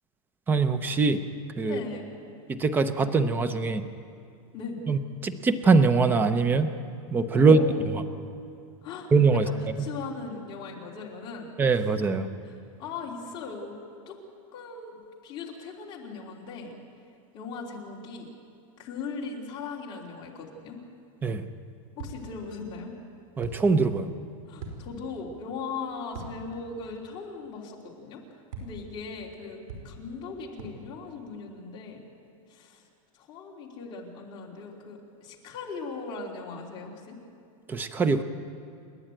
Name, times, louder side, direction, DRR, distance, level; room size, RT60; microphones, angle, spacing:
voice 1, 0.5-1.2 1.6-1.8 2.5-3.9 4.9-6.7 7.1-7.6 9.1-9.5 11.6-12.3 21.2-21.4 23.4-24.1 37.7-38.2, right 4 dB, 10° right, 11 dB, 0.6 m, -22 dB
voice 2, 1.6-2.1 4.5-4.8 7.4-7.9 8.8-11.9 12.4-13.7 14.1-14.2 14.5-16.7 17.3-18.3 18.8-20.8 22.0-22.9 24.5-28.2 28.6-29.6 29.8-32.0 32.5-32.8 33.1-37.2, left 4 dB, 25° left, -2 dB, 3.1 m, -39 dB
sound 1, 22.0-22.5 23.4-23.9 24.6-25.2 26.1-26.7 26.9-27.0 28.5-29.0 29.7-30.2 30.6-31.1, right 3 dB, 80° right, 4.7 m, -42 dB
29.0 x 11.0 x 9.0 m, 2.5 s
supercardioid pair, 165°, 18 cm